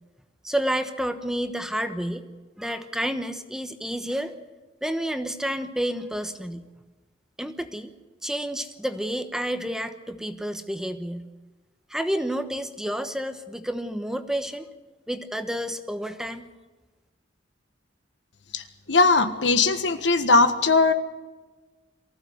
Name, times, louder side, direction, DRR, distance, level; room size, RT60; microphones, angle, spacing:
voice 1, 0.4-2.3 2.6-4.3 4.8-6.7 7.4-7.9 8.2-11.3 11.9-14.7 15.1-16.5, equal, 5° right, 9 dB, 1.1 m, -30 dB
voice 2, 18.9-20.9, left 3 dB, 75° left, 9 dB, 1.6 m, -19 dB
23.5 x 15.5 x 8.0 m, 1.2 s
head